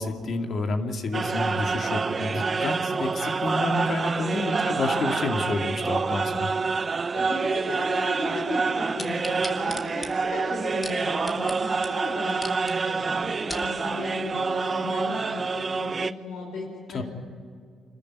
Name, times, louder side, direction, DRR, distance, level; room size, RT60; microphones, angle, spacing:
voice 1, 0.0-6.5 16.9-17.0, left 3 dB, 55° left, 4 dB, 2.5 m, -29 dB
sound 1, 1.1-16.1, right 4 dB, 35° right, 0.7 m, -27 dB
voice 2, 7.1-17.0, left 2 dB, 85° left, -1 dB, 5.8 m, -35 dB
sound 2, 9.0-11.6 11.8-11.9 12.3-12.7 13.2-13.7 14.3-14.4, left 2 dB, 20° left, 2.2 m, -37 dB
26.0 x 13.5 x 9.7 m, 2.1 s
cardioid pair, 90°, 0 cm